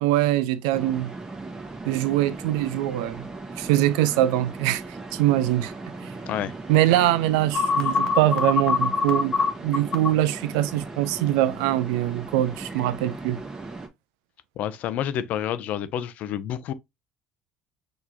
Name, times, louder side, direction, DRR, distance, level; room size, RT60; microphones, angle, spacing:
voice 1, 0.0-1.1 1.9-3.3 3.6-4.8 5.1-5.7 6.0-6.1 6.7-9.3 9.6-13.4, right 14 dB, 85° right, 0.4 m, -23 dB
sound 1, 0.7-13.9, right 3 dB, 20° right, 1.3 m, -38 dB
sound 2, 7.5-10.1, left 5 dB, 35° left, 0.9 m, -22 dB
voice 2, 14.6-16.7, left 10 dB, 65° left, 0.5 m, -29 dB
5.9 x 3.0 x 2.7 m
supercardioid pair, 75°, 3 cm